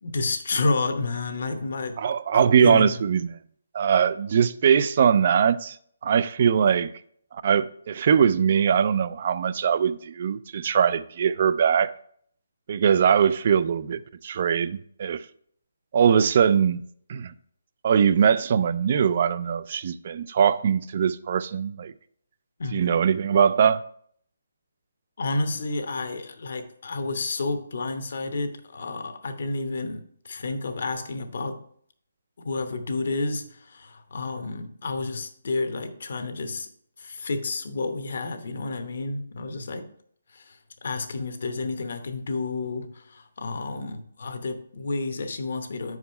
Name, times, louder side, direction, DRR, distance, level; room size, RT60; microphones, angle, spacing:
voice 1, 0.0-2.0 2.3-3.0 22.6-22.8 25.2-31.6 32.4-36.7 37.0-39.9 40.3-46.0, left 3 dB, 60° left, 0.9 m, -30 dB
voice 2, 2.0-3.3 3.7-5.8 6.0-6.9 7.3-11.9 12.7-15.2 15.9-16.8 17.1-17.3 17.8-21.9 22.7-23.8, right 7 dB, 45° right, 0.3 m, -21 dB
5.2 x 4.8 x 5.5 m
hypercardioid pair, 160°, 0 cm